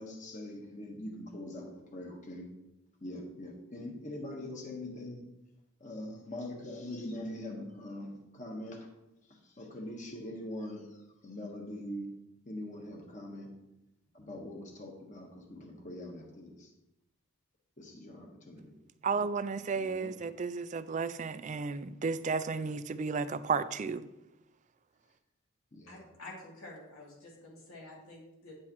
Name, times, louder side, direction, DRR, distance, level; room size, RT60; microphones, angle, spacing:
voice 1, 0.0-2.4 3.0-5.2 5.8-8.8 9.6-10.9 11.2-12.1 12.5-13.5 14.1-16.7 17.8-18.7 19.8-20.1 25.7-26.0, left 1 dB, 35° left, 1 dB, 1.2 m, -42 dB
voice 2, 19.0-24.1, right 5 dB, 35° right, 13 dB, 0.3 m, -33 dB
voice 3, 25.9-28.5, left 2 dB, 85° left, -3 dB, 2.8 m, -49 dB
9.6 x 7.6 x 3.0 m, 0.90 s
head